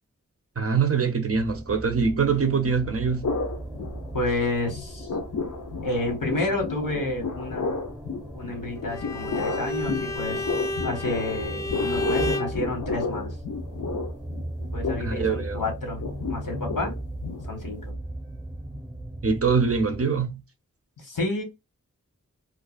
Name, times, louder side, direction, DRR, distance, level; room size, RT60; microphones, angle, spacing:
voice 1, 0.6-3.4 15.0-15.6 19.2-20.4, right 5 dB, 45° right, 0.5 m, -24 dB
sound 1, 1.3-20.0, right 1 dB, 15° right, 0.8 m, -38 dB
sound 2, 3.2-4.5 4.7-17.9, left 4 dB, 70° left, 0.6 m, -32 dB
voice 2, 4.1-5.1 5.8-7.7 8.3-10.4 10.8-13.4 14.7-16.0 16.3-17.0 17.4-18.0 21.0-21.4, left 2 dB, 90° left, 1.2 m, -30 dB
Bowed string instrument, 8.9-12.6, left 1 dB, 10° left, 0.4 m, -31 dB
2.4 x 2.3 x 2.3 m
wide cardioid pair, 65°, 32 cm